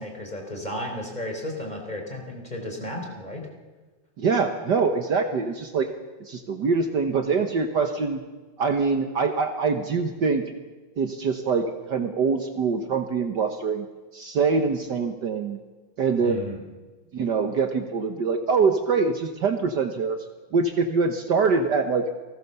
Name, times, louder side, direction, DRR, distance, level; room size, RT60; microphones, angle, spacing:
voice 1, 0.0-3.5 16.2-16.6, left 1 dB, 20° left, 2 dB, 4.2 m, -33 dB
voice 2, 4.2-5.9 6.2-8.2 8.6-10.4 11.0-13.9 14.1-15.6 16.0-16.4 17.1-20.2 20.5-22.0, right 4 dB, 60° right, 6 dB, 1.8 m, -24 dB
28.5 x 19.5 x 6.9 m, 1.3 s
omnidirectional pair, 2.3 m